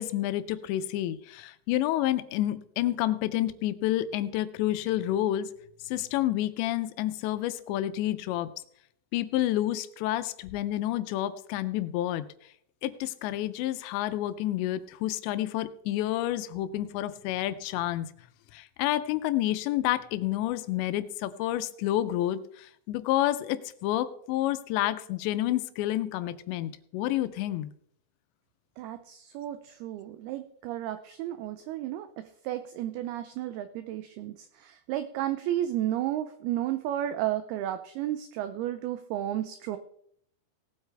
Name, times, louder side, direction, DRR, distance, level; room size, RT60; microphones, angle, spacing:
voice 1, 0.0-5.5 5.8-8.5 9.1-12.3 12.8-18.1 18.5-27.7, left 14 dB, 85° left, 12 dB, 2.8 m, -29 dB
voice 2, 28.8-39.8, right 12 dB, 90° right, 10 dB, 2.2 m, -33 dB
18.5 x 8.1 x 3.3 m, 0.68 s
omnidirectional pair, 5.1 m